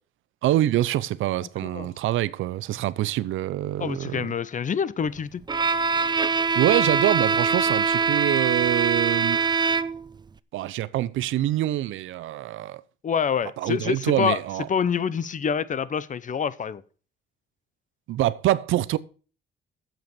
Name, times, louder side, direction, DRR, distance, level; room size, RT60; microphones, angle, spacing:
voice 1, 0.4-4.3 6.5-9.4 10.5-12.8 13.6-14.7 18.1-19.0, right 14 dB, 80° right, 0.6 m, -25 dB
voice 2, 3.8-5.4 13.0-14.4 14.7-16.8, left 7 dB, 40° left, 0.8 m, -26 dB
Bowed string instrument, 5.5-10.2, right 5 dB, 20° right, 0.5 m, -23 dB
8.0 x 7.6 x 6.8 m
cardioid pair, 90°, 20 cm